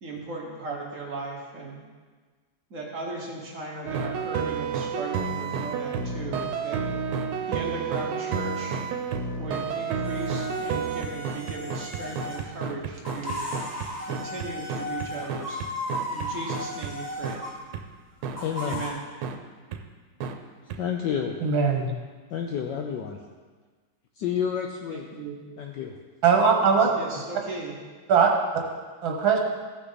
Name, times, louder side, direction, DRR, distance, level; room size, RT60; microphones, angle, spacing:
voice 1, 0.0-1.8 2.7-6.8 7.5-8.8 9.4-13.4 14.1-15.6 16.1-17.4 18.6-19.1 24.9-25.4 26.6-27.8, right 2 dB, 40° right, -2 dB, 1.6 m, -37 dB
sound 1, 3.9-16.9 17.2-17.4 17.7-17.8 18.2-18.4 18.7-18.8 19.2-19.4 19.7-19.8 20.2-20.3 20.7-20.8, right 6 dB, 85° right, 1.6 m, -30 dB
sound 2, 10.0-12.5 12.9-17.6 18.3-18.9, left 1 dB, 10° left, 1.7 m, -35 dB
voice 2, 18.4-18.9 20.8-21.4 22.3-23.2 24.2-25.0 25.6-26.0, left 8 dB, 70° left, 3 dB, 1.1 m, -29 dB
voice 3, 21.4-21.9 26.2-26.9 28.1-28.3 29.0-29.4, right 6 dB, 70° right, 1 dB, 2.0 m, -20 dB
14.5 x 6.1 x 4.0 m, 1.5 s
omnidirectional pair, 2.3 m